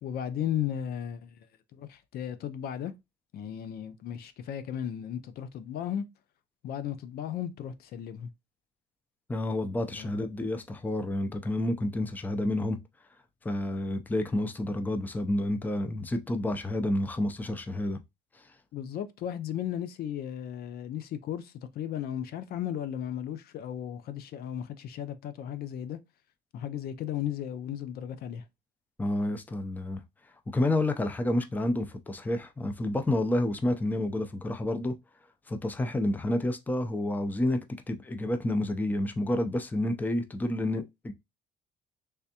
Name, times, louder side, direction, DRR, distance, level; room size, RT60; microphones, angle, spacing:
voice 1, 0.0-1.5 1.7-2.9 3.3-6.1 6.6-8.3 9.9-10.1 18.7-26.0 26.5-28.4, left 10 dB, 65° left, 0.5 m, -35 dB
voice 2, 9.3-12.8 13.4-18.0 29.0-30.0 30.5-34.9 35.5-37.6 37.9-41.1, left 1 dB, 10° left, 0.5 m, -29 dB
3.4 x 3.3 x 2.8 m
cardioid pair, 110°, 17 cm